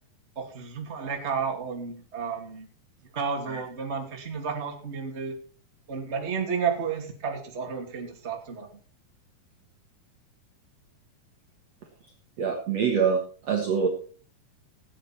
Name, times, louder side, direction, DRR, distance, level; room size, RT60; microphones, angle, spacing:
voice 1, 0.4-2.7 3.1-5.4 5.9-8.7, right 6 dB, 20° right, 1 dB, 2.2 m, -32 dB
voice 2, 12.4-13.9, right 6 dB, 55° right, 2 dB, 2.3 m, -25 dB
17.5 x 9.0 x 4.3 m, 0.40 s
omnidirectional pair, 4.3 m